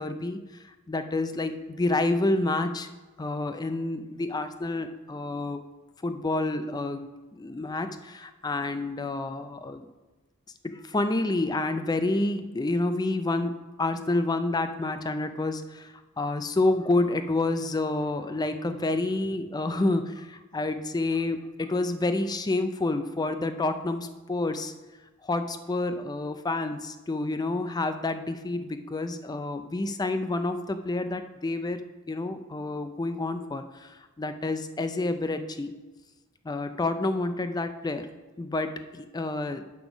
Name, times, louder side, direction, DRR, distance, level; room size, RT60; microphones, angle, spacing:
voice 1, 0.0-2.9 3.2-5.6 6.0-9.9 10.6-13.5 13.8-24.7 25.2-31.8 32.1-35.7 36.4-38.1 38.4-39.7, left 2 dB, 20° left, 9 dB, 0.4 m, -29 dB
7.0 x 5.4 x 6.0 m, 1.2 s
head